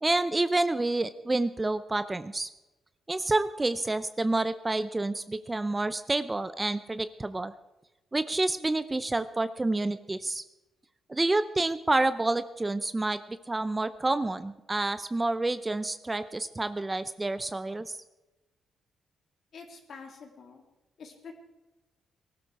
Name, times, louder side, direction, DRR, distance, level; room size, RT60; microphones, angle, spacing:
voice 1, 0.0-2.5 3.1-7.5 8.1-10.4 11.1-18.0, right 2 dB, 20° right, 12 dB, 0.6 m, -28 dB
voice 2, 19.5-20.6 21.0-21.3, left 5 dB, 65° left, 3 dB, 3.0 m, -46 dB
19.0 x 12.5 x 4.7 m, 1.0 s
cardioid pair, 90°, 0 cm